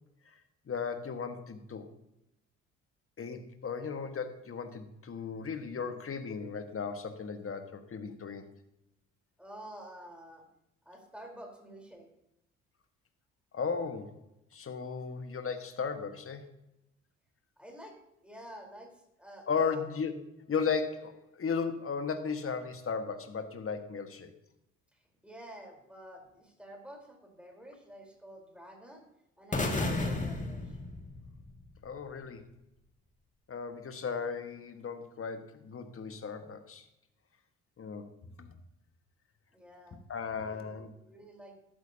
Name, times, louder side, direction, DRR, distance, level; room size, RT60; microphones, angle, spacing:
voice 1, 0.7-1.9 3.2-8.5 13.5-14.2 14.5-16.5 19.5-20.1 20.5-24.3 29.9-30.2 31.8-32.4 33.5-36.8 37.8-38.1 38.4-38.5 40.1-40.9, left 5 dB, 40° left, 7 dB, 1.6 m, -36 dB
voice 2, 9.4-10.4 10.8-12.1 17.6-17.9 18.2-19.8 25.2-29.0 29.4-30.8 39.5-40.0 40.4-41.6, right 1 dB, 5° right, 1 dB, 4.1 m, -50 dB
sound 1, 29.5-31.6, left 2 dB, 20° left, 2.3 m, -33 dB
13.0 x 11.5 x 2.9 m, 0.85 s
hypercardioid pair, 50°, 35 cm